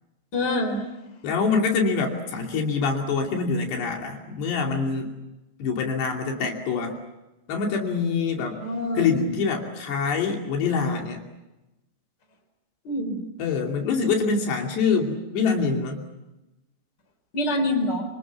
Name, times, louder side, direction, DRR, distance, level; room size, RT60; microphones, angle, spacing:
voice 1, 0.3-0.8 8.6-9.1 12.8-13.2 17.3-18.0, left 1 dB, 25° left, 6 dB, 4.4 m, -25 dB
voice 2, 1.2-5.1 5.6-7.0 7.5-8.6 8.9-11.2 13.4-16.0, left 5 dB, 70° left, 2 dB, 4.8 m, -25 dB
27.0 x 27.0 x 7.2 m, 0.99 s
omnidirectional pair, 5.0 m